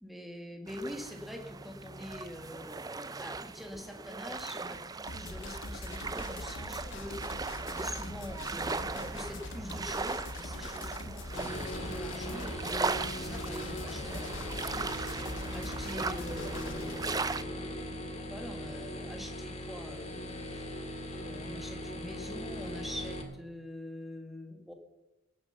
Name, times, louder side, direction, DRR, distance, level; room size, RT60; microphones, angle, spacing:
voice 1, 0.0-14.2 14.6-15.2 15.5-20.6 21.2-24.7, left 1 dB, ahead, 4 dB, 1.7 m, -45 dB
sound 1, 0.7-17.4, right 4 dB, 15° right, 0.4 m, -38 dB
sound 2, 5.1-16.9, left 2 dB, 55° left, 1.2 m, -43 dB
sound 3, 11.3-23.2, left 1 dB, 30° left, 1.9 m, -40 dB
18.0 x 8.8 x 6.8 m, 0.97 s
head